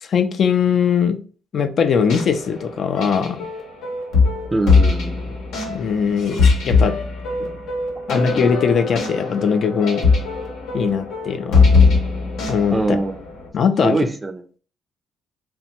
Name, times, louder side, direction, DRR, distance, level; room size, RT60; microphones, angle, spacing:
voice 1, 0.0-1.2 1.5-3.4 5.7-7.0 7.4-7.5 8.1-10.1 10.7-11.7 12.5-13.0 13.5-14.0, left 6 dB, 55° left, 8 dB, 0.3 m, -20 dB
sound 1, 1.9-13.5, left 4 dB, 85° left, 0.8 m, -20 dB
voice 2, 4.5-5.3 12.7-13.2 13.8-14.4, right 2 dB, 20° right, 8 dB, 0.4 m, -23 dB
2.8 x 2.1 x 2.8 m, 0.40 s
cardioid pair, 90°, 0 cm